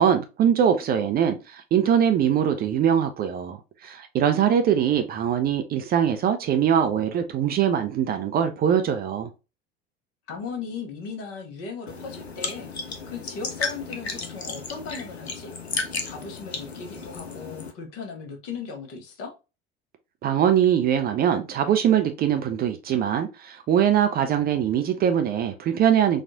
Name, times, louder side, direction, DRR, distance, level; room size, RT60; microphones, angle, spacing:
voice 1, 0.0-9.3 20.2-26.2, right 9 dB, 30° right, 0.5 m, -22 dB
voice 2, 10.3-12.7 13.1-15.5 16.0-19.3, left 5 dB, 50° left, 1.2 m, -37 dB
sound 1, 11.9-17.7, left 4 dB, 85° left, 0.7 m, -34 dB
4.2 x 2.4 x 2.7 m
figure-of-eight pair, 70°, 31 cm